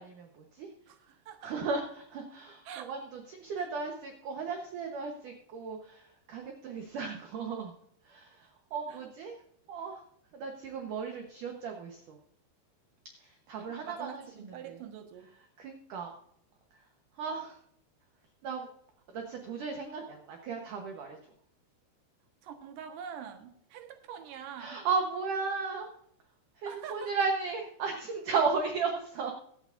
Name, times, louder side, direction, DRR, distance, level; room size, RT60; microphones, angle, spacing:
voice 1, 0.0-0.7 1.4-3.0 3.3-7.7 8.1-9.4 9.7-10.0 10.3-12.2 13.2-14.2 14.7-14.8 15.6-16.1 17.2-17.6 18.4-18.7 19.1-21.2 24.6-25.9 26.6-29.3, right 5 dB, 80° right, 3 dB, 1.8 m, -35 dB
voice 2, 0.9-1.6 2.6-3.0 3.6-3.7 8.9-9.1 13.6-15.3 22.4-24.8 26.7-27.2, right 8 dB, 65° right, 5 dB, 2.3 m, -45 dB
23.0 x 8.4 x 2.6 m, 0.69 s
omnidirectional pair, 5.5 m